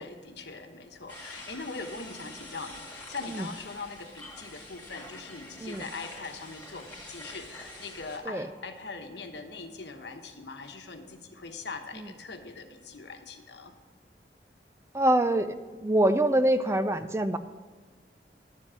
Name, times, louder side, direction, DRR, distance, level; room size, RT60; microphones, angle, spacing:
voice 1, 0.0-13.7, left 4 dB, 80° left, 6 dB, 1.1 m, -41 dB
sound 1, 1.1-8.2, left 1 dB, 15° left, 1.9 m, -46 dB
voice 2, 14.9-15.5 15.8-17.4, right 1 dB, 15° right, 11 dB, 0.4 m, -24 dB
11.5 x 7.5 x 6.3 m, 1.4 s
head